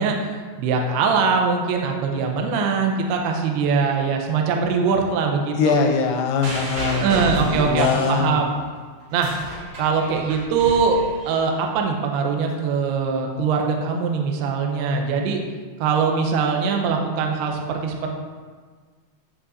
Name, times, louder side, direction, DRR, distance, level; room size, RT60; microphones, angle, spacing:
voice 1, 0.0-5.8 6.9-8.5 9.1-11.0 11.3-15.4 15.8-18.1, right 5 dB, 75° right, 2 dB, 2.6 m, -22 dB
voice 2, 5.6-8.4, left 5 dB, 80° left, 3 dB, 2.4 m, -22 dB
sound 1, 6.4-8.6 9.0-11.6 12.5-12.6, right 1 dB, 50° right, 4.5 m, -32 dB
16.0 x 5.3 x 4.2 m, 1.5 s
omnidirectional pair, 5.6 m